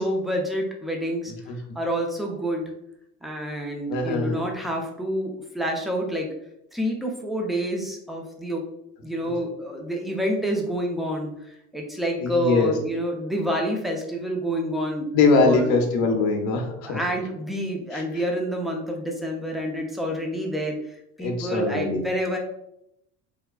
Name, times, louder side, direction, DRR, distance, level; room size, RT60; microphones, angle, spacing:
voice 1, 0.0-1.3 1.8-2.7 3.2-6.3 6.7-8.6 9.0-15.1 15.4-15.7 16.0-16.1 16.8-20.8 21.2-22.4, equal, ahead, 0 dB, 0.3 m, -28 dB
voice 2, 3.9-4.5 12.2-12.7 15.1-17.0 17.9-18.0 21.2-22.0, left 4 dB, 65° left, 3 dB, 0.8 m, -22 dB
3.6 x 2.3 x 2.2 m, 0.78 s
hypercardioid pair, 70°, 46 cm